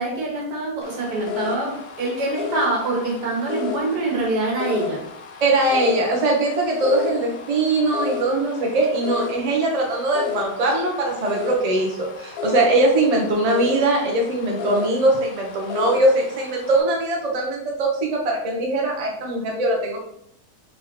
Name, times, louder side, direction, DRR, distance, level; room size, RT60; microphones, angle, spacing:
voice 1, 0.0-5.0, right 2 dB, 85° right, -2 dB, 1.8 m, -25 dB
sound 1, 0.8-16.8, left 7 dB, 70° left, 1.0 m, -33 dB
voice 2, 5.4-20.0, right 2 dB, 30° right, -1 dB, 0.7 m, -21 dB
4.0 x 3.6 x 3.0 m, 0.73 s
omnidirectional pair, 1.7 m